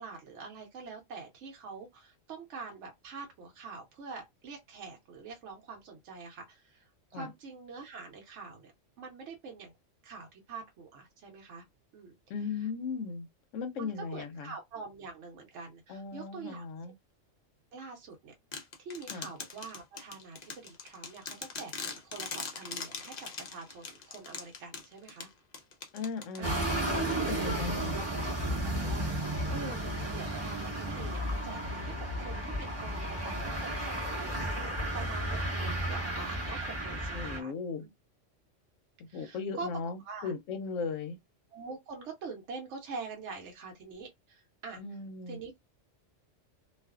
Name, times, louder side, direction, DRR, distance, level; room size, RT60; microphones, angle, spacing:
voice 1, 0.0-9.7 10.0-11.6 11.9-12.2 12.6-12.7 13.8-16.6 17.7-25.3 26.4-26.6 27.4-29.8 30.1-37.5 37.8-37.9 39.1-39.7 40.0-40.3 41.5-44.8 45.3-45.6, right 4 dB, 70° right, 1.0 m, -45 dB
voice 2, 12.3-13.3 13.5-14.5 15.9-16.9 19.1-19.3 25.9-27.0 27.3-27.9 37.1-37.9 39.0-41.2 44.8-45.4, left 5 dB, 85° left, 0.9 m, -37 dB
Beads Falling Onto Wood, 18.5-27.0, left 5 dB, 50° left, 0.5 m, -42 dB
sound 1, 26.4-37.4, right 1 dB, 15° right, 1.0 m, -33 dB
2.4 x 2.3 x 2.3 m
omnidirectional pair, 1.3 m